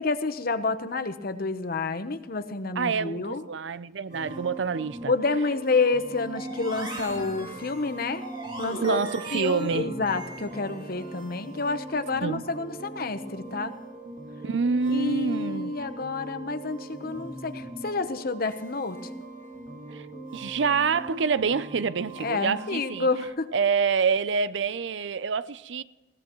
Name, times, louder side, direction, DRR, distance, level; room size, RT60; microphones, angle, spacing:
voice 1, 0.0-3.4 5.1-8.2 8.6-9.0 9.3-13.7 14.9-19.0 22.2-23.5, left 3 dB, 55° left, 0.9 m, -29 dB
voice 2, 2.8-5.1 8.8-9.9 12.2-12.4 14.4-15.7 19.9-20.1 20.3-23.1 23.5-25.8, right 5 dB, 75° right, 0.5 m, -27 dB
sound 1, 4.1-23.3, right 2 dB, 40° right, 2.6 m, -41 dB
sound 2, 6.3-11.3, right 2 dB, 25° right, 2.6 m, -39 dB
20.5 x 16.5 x 3.1 m
head